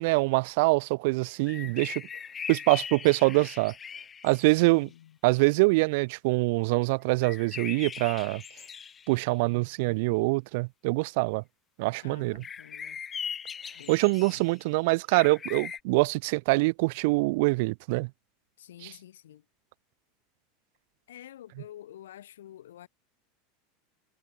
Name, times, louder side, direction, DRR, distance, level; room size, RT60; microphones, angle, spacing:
voice 1, 0.0-2.0 2.5-3.7 4.2-4.9 5.2-8.4 9.1-11.4 11.8-12.4 13.9-18.1 18.8-18.9, right 26 dB, 65° right, 0.5 m, -24 dB
sound 1, 1.5-4.8 7.2-9.2 12.4-14.6 15.1-15.8, left 7 dB, 25° left, 0.6 m, -40 dB
voice 2, 4.5-5.2 12.0-13.0 13.7-14.5 18.6-19.4 21.1-22.9, left 12 dB, 90° left, 2.1 m, -49 dB
supercardioid pair, 120°, 0 cm